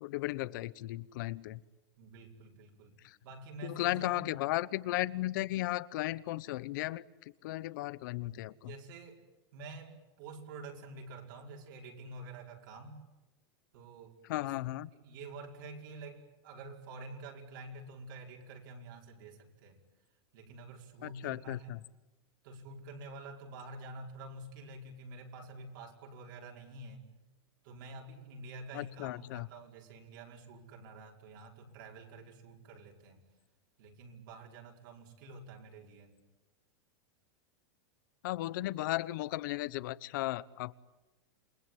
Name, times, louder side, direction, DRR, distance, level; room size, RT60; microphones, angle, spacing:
voice 1, 0.0-1.6 3.6-7.0 7.4-8.7 14.3-14.9 21.0-21.8 28.7-29.5 38.2-40.7, left 17 dB, 50° left, 18 dB, 1.0 m, -35 dB
voice 2, 2.0-2.9 3.2-4.3 8.7-9.2 9.5-13.0 13.7-14.6 14.9-19.8 20.3-21.8 22.4-27.1 27.6-33.3 33.8-36.1, right 2 dB, 55° right, 1 dB, 5.4 m, -48 dB
28.5 x 22.0 x 9.3 m, 1.0 s
supercardioid pair, 165°, 13 cm